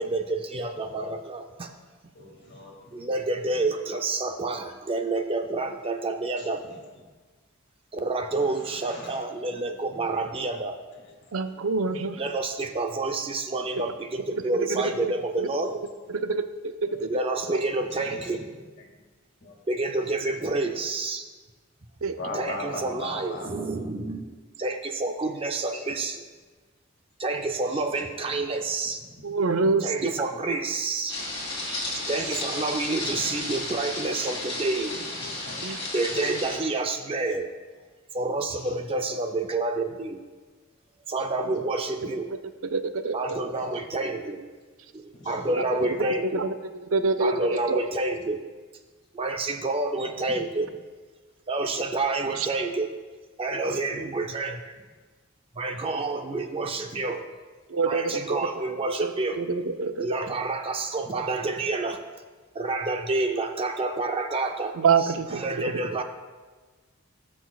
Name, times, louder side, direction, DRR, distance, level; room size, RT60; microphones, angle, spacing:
voice 1, 0.0-1.7 2.9-6.6 7.9-10.8 12.2-15.7 17.1-18.5 19.7-21.2 22.3-26.2 27.2-29.0 29.8-31.2 32.1-35.0 35.9-37.5 38.1-40.2 41.1-42.3 43.1-44.4 44.9-46.4 47.2-48.4 49.1-50.7 51.5-52.9 53.4-54.7 55.6-57.2 57.9-59.4 60.0-62.0 62.5-64.7 65.3-66.0, right 2 dB, 25° right, 0.4 m, -28 dB
voice 2, 2.1-3.1 6.4-6.8 8.6-9.2 10.1-10.3 10.9-11.0 11.5-11.6 11.8-12.5 16.9-17.2 17.9-18.6 19.4-19.6 20.4-20.6 22.1-23.7 25.3-25.8 27.7-27.8 29.5-29.7 33.0-33.3 35.2-35.9 38.5-38.7 43.5-43.8 45.1-46.1 48.0-48.1 50.2-50.4 52.1-52.6 56.3-56.9, left 2 dB, 55° left, 1.9 m, -41 dB
voice 3, 11.3-12.2 14.7-14.8 15.4-15.5 16.1-17.1 17.5-17.6 22.0-22.2 29.2-30.1 31.7-31.8 35.6-35.8 42.3-42.4 42.7-43.2 45.5-45.9 46.3-46.5 46.8-47.8 52.4-52.5 57.7-58.4 59.0-59.1 59.4-60.1 64.8-65.4, right 4 dB, 75° right, 0.5 m, -26 dB
sound 1, 31.1-36.6, left 2 dB, 25° left, 2.5 m, -33 dB
17.0 x 6.2 x 2.3 m
head